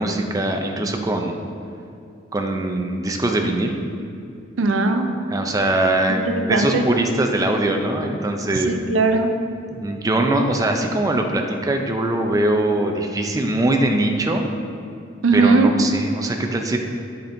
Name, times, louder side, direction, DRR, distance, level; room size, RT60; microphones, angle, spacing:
voice 1, 0.0-1.4 2.3-3.8 5.3-6.2 6.5-8.7 9.7-14.4 15.3-16.8, right 1 dB, 20° right, 3 dB, 0.4 m, -21 dB
voice 2, 4.6-5.1 6.1-6.8 8.7-9.3 15.2-15.7, right 3 dB, 85° right, 6 dB, 0.5 m, -18 dB
7.8 x 5.1 x 2.6 m, 2.5 s
head